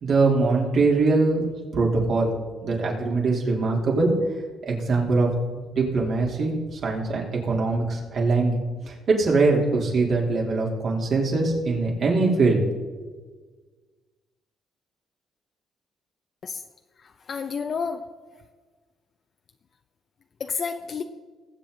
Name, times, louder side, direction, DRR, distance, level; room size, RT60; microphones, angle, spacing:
voice 1, 0.0-2.3 2.6-4.1 4.6-5.3 5.5-12.6, right 3 dB, 60° right, -1 dB, 3.5 m, -22 dB
voice 2, 17.0-18.0 20.4-21.0, left 5 dB, 50° left, 5 dB, 0.7 m, -30 dB
20.5 x 8.2 x 4.0 m, 1.4 s
cardioid pair, 90°, 0 cm